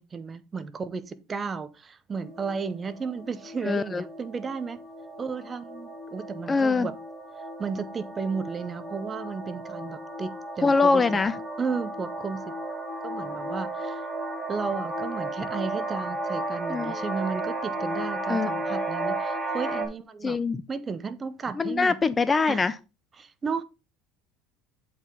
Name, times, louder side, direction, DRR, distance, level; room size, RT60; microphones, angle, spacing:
voice 1, 0.0-4.8 5.2-6.9 7.6-11.0 11.6-12.4 13.0-14.1 14.5-20.4 20.7-22.0 22.5-22.7 23.2-23.6, right 5 dB, 25° right, 0.7 m, -33 dB
sound 1, 2.1-19.9, right 2 dB, 5° right, 2.1 m, -34 dB
voice 2, 3.6-4.0 6.5-6.9 10.6-11.3 16.7-17.0 18.3-18.5 20.2-20.6 21.6-22.7, left 4 dB, 20° left, 0.3 m, -23 dB
7.8 x 4.6 x 3.6 m
cardioid pair, 130°, 0 cm